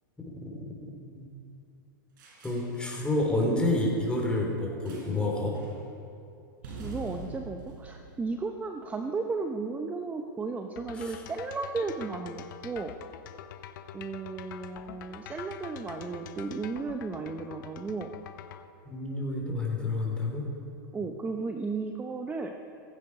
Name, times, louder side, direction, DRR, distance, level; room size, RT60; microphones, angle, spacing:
voice 1, 0.3-1.3 2.4-5.6 11.0-11.1 18.9-20.4, left 2 dB, 10° left, -2 dB, 3.9 m, -29 dB
sound 1, 2.2-3.2 4.9-5.3 5.5-5.8 6.6-9.0, right 3 dB, 65° right, 4.4 m, -44 dB
voice 2, 6.6-12.9 13.9-18.1 20.9-22.5, right 4 dB, 15° right, 5 dB, 0.8 m, -34 dB
sound 2, 10.8-18.6, left 9 dB, 65° left, 1.1 m, -45 dB
15.5 x 15.0 x 4.9 m, 2.6 s
hypercardioid pair, 120°, 12 cm